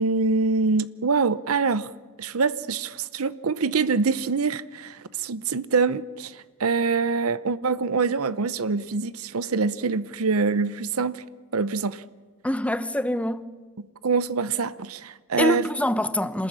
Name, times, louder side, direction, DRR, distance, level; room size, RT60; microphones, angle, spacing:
voice 1, 0.0-1.9 2.2-11.2 11.5-12.0 14.0-15.6, right 4 dB, 80° right, 0.8 m, -25 dB
voice 2, 12.4-13.6 15.4-16.5, left 1 dB, 5° left, 0.8 m, -25 dB
26.5 x 14.0 x 9.9 m
head